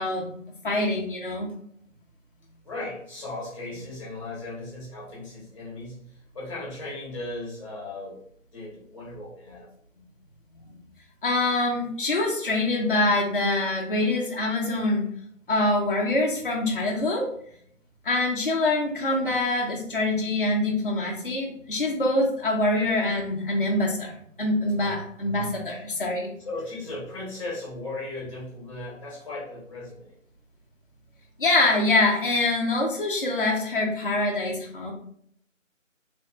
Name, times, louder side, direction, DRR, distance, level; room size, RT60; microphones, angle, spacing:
voice 1, 0.0-1.5 9.5-9.6 10.0-10.1 10.5-10.8 11.2-15.0 15.5-17.3 18.0-26.3 31.4-34.9, left 2 dB, 40° left, -1 dB, 0.6 m, -25 dB
voice 2, 2.6-6.0 6.3-8.2 8.5-9.7 26.4-30.1, left 2 dB, 25° left, -6 dB, 1.2 m, -37 dB
3.4 x 3.0 x 2.4 m, 0.66 s
figure-of-eight pair, 170°, 40 cm